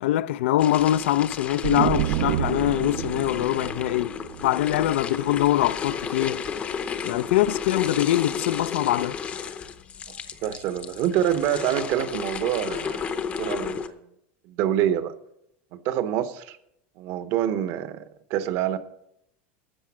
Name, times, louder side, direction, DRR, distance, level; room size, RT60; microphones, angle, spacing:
voice 1, 0.0-4.2 4.4-6.4 7.0-9.2, left 14 dB, 85° left, 0.5 m, -23 dB
sound 1, 0.6-13.9, left 6 dB, 20° left, 0.7 m, -33 dB
sound 2, 1.6-5.2, right 13 dB, 65° right, 0.4 m, -29 dB
voice 2, 10.4-14.0 14.5-15.1 15.7-16.6 17.0-18.8, right 11 dB, 45° right, 0.9 m, -26 dB
13.0 x 7.7 x 6.1 m
supercardioid pair, 165°, 6 cm